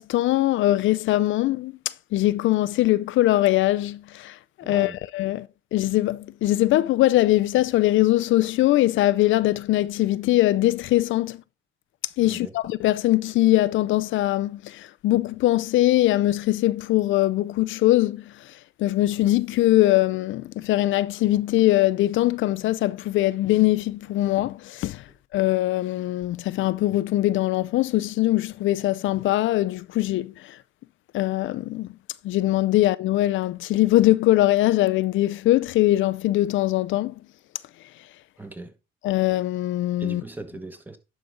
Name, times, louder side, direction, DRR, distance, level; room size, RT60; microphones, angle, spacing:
voice 1, 0.0-11.4 12.2-25.1 25.3-30.6 31.1-31.9 32.2-37.1 39.0-40.2, left 16 dB, 80° left, 0.4 m, -22 dB
voice 2, 4.6-5.0 12.2-12.5 38.4-38.7 40.0-41.0, right 2 dB, 10° right, 1.4 m, -38 dB
11.0 x 5.0 x 3.8 m
cardioid pair, 90°, 20 cm